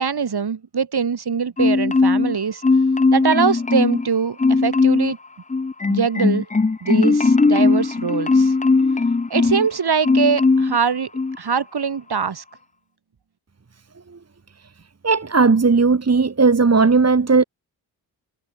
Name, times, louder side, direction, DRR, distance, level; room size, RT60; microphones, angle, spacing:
voice 1, 0.0-2.6 3.1-5.2 5.9-6.5 6.8-8.5 9.3-11.1 11.4-12.4, right 6 dB, 50° right, 5.7 m, -22 dB
Marimba xylophone, 1.6-2.4 2.6-4.1 4.4-5.1 5.5-9.7 10.0-10.8 11.1-11.4, left 3 dB, 15° left, 0.8 m, -18 dB
voice 2, 15.0-17.4, right 4 dB, 30° right, 2.4 m, -16 dB
hypercardioid pair, 40°, 49 cm